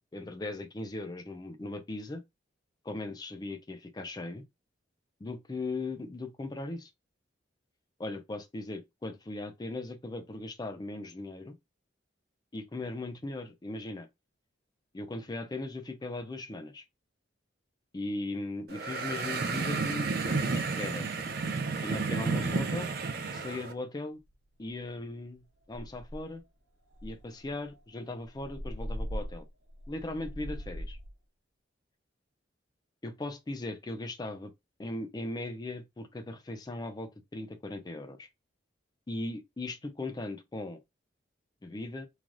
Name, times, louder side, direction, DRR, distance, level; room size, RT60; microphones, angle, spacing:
voice 1, 0.1-2.2 2.8-4.4 5.2-6.9 8.0-11.6 12.5-14.1 14.9-16.8 17.9-21.1 21.8-22.9 23.3-24.2 24.6-26.4 27.0-29.5 29.9-31.0 33.0-34.5 34.8-38.3 39.1-40.8 41.6-42.1, left 2 dB, 20° left, 0.4 m, -38 dB
sound 1, 18.7-23.7, right 4 dB, 55° right, 0.5 m, -31 dB
sound 2, 24.3-24.4 24.7-25.0 25.3-25.4 25.7-26.4 26.9-31.1, equal, 70° right, 1.0 m, -40 dB
3.2 x 2.3 x 2.5 m
head